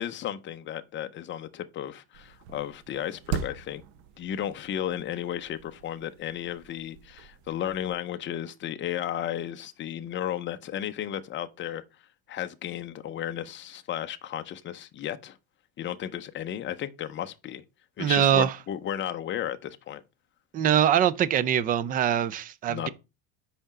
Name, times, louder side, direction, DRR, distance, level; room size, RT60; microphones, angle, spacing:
voice 1, 0.0-3.8 4.2-11.8 12.3-15.4 15.8-17.6 18.0-20.0 22.7-22.9, left 10 dB, 25° left, 0.7 m, -34 dB
sound 1, 2.1-7.9, right 8 dB, 80° right, 0.9 m, -40 dB
voice 2, 18.0-18.5 20.5-22.9, right 10 dB, 20° right, 0.3 m, -23 dB
5.2 x 5.0 x 5.9 m
supercardioid pair, 135°, 42 cm